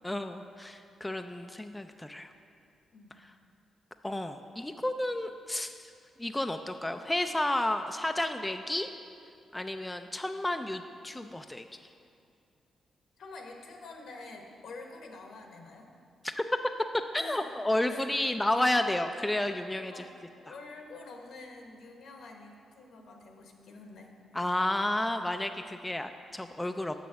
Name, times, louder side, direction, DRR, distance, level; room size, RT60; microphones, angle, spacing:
voice 1, 0.0-2.3 4.0-5.9 6.2-8.9 9.5-11.7 16.2-16.4 17.1-20.0 24.3-27.0, left 1 dB, 10° left, 6 dB, 0.4 m, -31 dB
voice 2, 13.2-15.9 17.1-17.4 17.9-18.1 19.9-20.1 20.4-24.2 26.4-26.5, left 3 dB, 75° left, 2 dB, 1.1 m, -47 dB
6.4 x 6.3 x 6.8 m, 2.4 s
cardioid pair, 90°, 0 cm